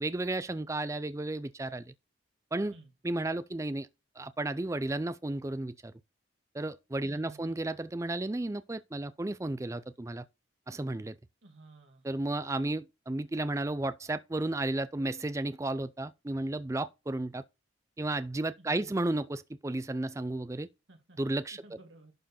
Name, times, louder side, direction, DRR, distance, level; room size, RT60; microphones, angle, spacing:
voice 1, 0.0-1.9 2.5-2.7 3.0-3.9 4.2-5.9 6.5-10.2 10.7-11.2 12.0-17.4 18.0-20.7 21.2-21.6, right 2 dB, 15° right, 0.4 m, -33 dB
voice 2, 7.0-7.7 11.4-12.1 18.6-19.0 20.9-21.2 21.5-22.1, right 2 dB, 70° right, 1.9 m, -54 dB
11.5 x 4.6 x 4.2 m
head